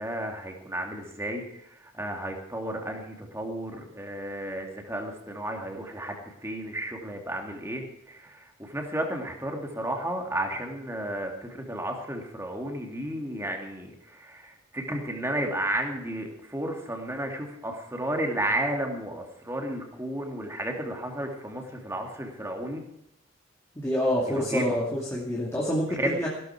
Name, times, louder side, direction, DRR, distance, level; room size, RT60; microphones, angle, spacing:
voice 1, 0.0-1.4 1.9-22.8 24.4-24.8 26.0-26.2, right 1 dB, 15° right, 2 dB, 2.6 m, -33 dB
voice 2, 23.7-26.3, equal, 15° left, -4 dB, 2.5 m, -27 dB
16.5 x 13.0 x 4.6 m, 0.77 s
head